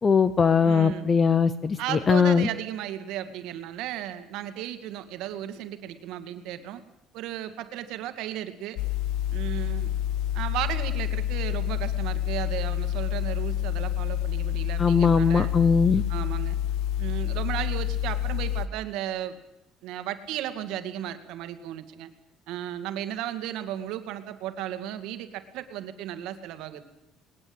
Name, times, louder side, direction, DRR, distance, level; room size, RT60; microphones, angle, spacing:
voice 1, 0.0-2.5 14.8-16.0, left 6 dB, 25° left, 14 dB, 0.8 m, -20 dB
voice 2, 0.6-1.1 1.8-6.8 7.1-8.8 9.3-9.9 10.3-15.5 16.1-16.6 17.0-19.4 19.8-22.1 22.5-26.8, right 11 dB, 75° right, 9 dB, 2.2 m, -35 dB
sound 1, 8.8-18.7, left 11 dB, 80° left, 1.1 m, -28 dB
20.5 x 19.5 x 8.9 m, 0.85 s
cardioid pair, 150°, 0 cm